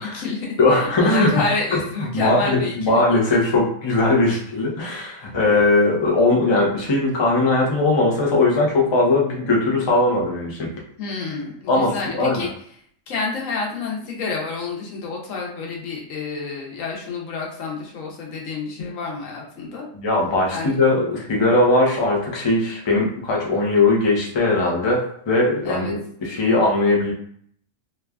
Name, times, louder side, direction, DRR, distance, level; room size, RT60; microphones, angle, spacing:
voice 1, 0.0-3.4 11.0-12.5 13.1-19.9 20.5-20.7 25.6-26.0, left 4 dB, 90° left, -1 dB, 1.2 m, -29 dB
voice 2, 0.6-1.5 2.1-10.7 11.7-12.5 19.9-25.0 25.3-27.1, left 2 dB, 35° left, -2 dB, 0.4 m, -19 dB
3.0 x 2.3 x 2.3 m, 0.62 s
omnidirectional pair, 1.3 m